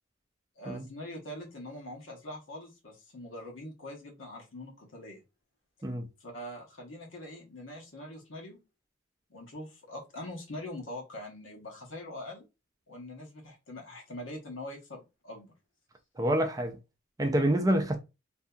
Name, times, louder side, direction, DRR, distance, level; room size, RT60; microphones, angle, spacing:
voice 1, 0.6-5.2 6.2-8.6 9.3-12.5 12.9-15.5, left 1 dB, 85° left, 1.0 m, -43 dB
voice 2, 16.2-16.8 17.2-18.0, right 1 dB, 20° right, 0.4 m, -27 dB
2.7 x 2.6 x 2.3 m
head